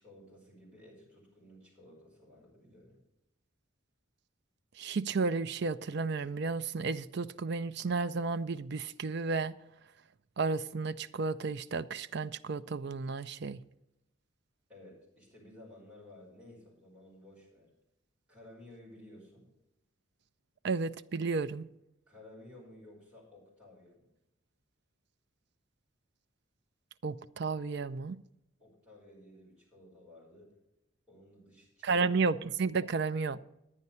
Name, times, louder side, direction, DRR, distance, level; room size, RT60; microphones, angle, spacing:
voice 1, 0.0-3.0 14.7-17.7 18.3-19.5 22.1-24.1 28.6-30.5 31.1-32.1, left 1 dB, 5° right, -6 dB, 5.2 m, -55 dB
voice 2, 4.8-9.6 10.4-13.6 20.6-21.7 27.0-28.2 31.8-33.4, right 4 dB, 50° right, 12 dB, 0.4 m, -32 dB
11.0 x 9.4 x 5.5 m, 0.86 s
head